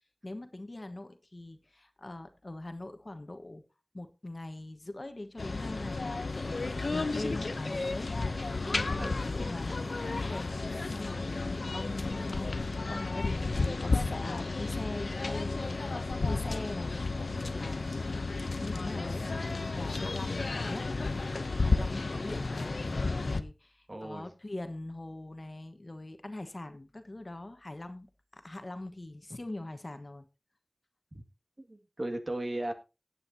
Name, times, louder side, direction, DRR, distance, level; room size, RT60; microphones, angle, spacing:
voice 1, 0.2-3.6 3.9-6.1 6.3-8.2 8.6-10.5 10.9-12.5 12.9-20.9 21.6-30.3, left 2 dB, 50° left, 1.3 m, -43 dB
sound 1, 5.4-23.4, left 3 dB, 90° left, 0.6 m, -32 dB
voice 2, 23.9-24.3 31.1-31.2 31.6-32.7, right 1 dB, 45° right, 1.9 m, -36 dB
17.5 x 8.8 x 2.8 m
wide cardioid pair, 45°, 0 cm